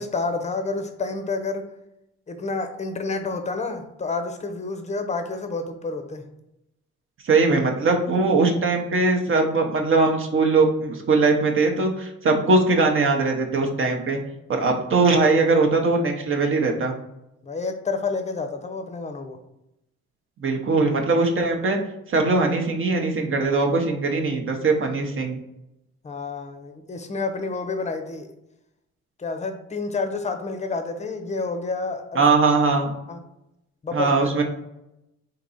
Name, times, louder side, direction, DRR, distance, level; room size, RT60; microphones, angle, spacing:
voice 1, 0.0-1.7 2.3-6.3 17.4-19.4 26.0-28.3 29.2-32.2 33.1-33.2 33.8-34.1, left 3 dB, 25° left, 7 dB, 0.6 m, -29 dB
voice 2, 7.2-14.2 14.5-17.0 20.4-21.8 22.1-25.4 32.1-32.9 33.9-34.4, right 3 dB, 45° right, 2 dB, 0.7 m, -20 dB
3.7 x 2.8 x 4.0 m, 0.88 s
cardioid pair, 90°, 30 cm